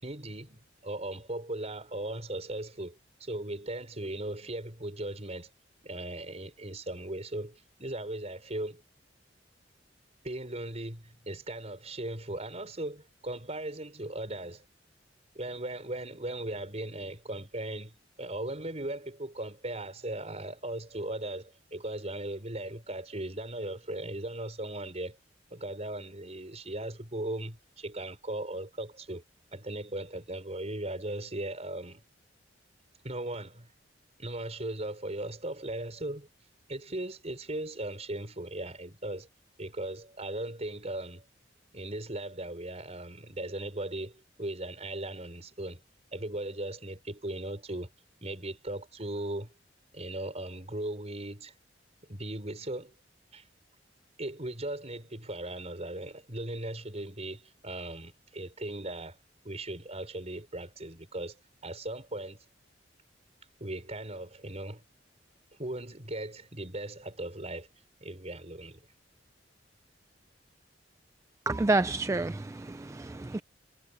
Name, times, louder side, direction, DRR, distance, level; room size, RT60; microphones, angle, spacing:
voice 1, 0.0-5.5 5.8-8.8 10.2-14.6 15.3-25.2 25.5-29.2 29.5-32.0 33.0-33.7 34.2-36.3 36.7-39.3 39.6-41.2 41.7-45.8 46.1-47.9 48.2-49.5 49.9-51.5 52.1-52.9 53.3-53.4 54.2-59.2 59.4-61.3 61.6-62.4 63.6-64.8 65.5-67.7 68.0-68.8, right 1 dB, 35° right, 5.2 m, -38 dB
voice 2, 71.5-73.4, right 2 dB, 15° right, 0.4 m, -29 dB
head